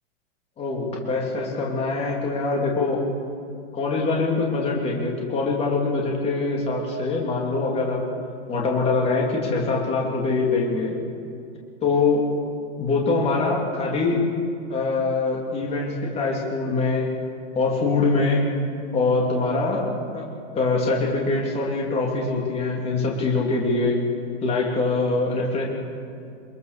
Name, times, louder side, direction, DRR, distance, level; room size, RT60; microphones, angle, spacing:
voice 1, 0.6-3.1 3.7-8.1 8.5-10.9 11.8-12.2 12.8-14.2 14.7-17.1 17.5-18.5 18.9-19.8 20.1-20.2 20.5-24.0 24.4-25.6, left 3 dB, 15° left, -2 dB, 3.0 m, -23 dB
26.5 x 22.0 x 6.8 m, 2.5 s
hypercardioid pair, 155°, 34 cm